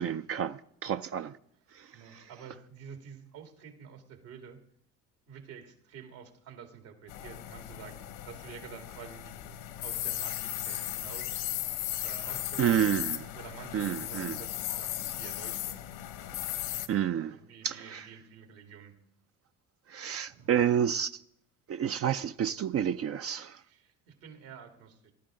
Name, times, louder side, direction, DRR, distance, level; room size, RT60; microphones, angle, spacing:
voice 1, 0.0-1.4 1.7-2.2 12.6-13.2 13.7-14.4 16.9-17.4 17.6-18.1 19.9-21.2 21.7-23.6, right 9 dB, 40° right, 0.5 m, -30 dB
voice 2, 1.9-4.6 5.3-11.6 12.0-12.9 13.3-15.9 17.2-19.0 20.3-20.6 23.6-25.1, right 7 dB, 75° right, 2.4 m, -49 dB
sound 1, 7.1-16.9, left 13 dB, 70° left, 1.2 m, -36 dB
20.5 x 11.5 x 3.8 m
hypercardioid pair, 65°, 38 cm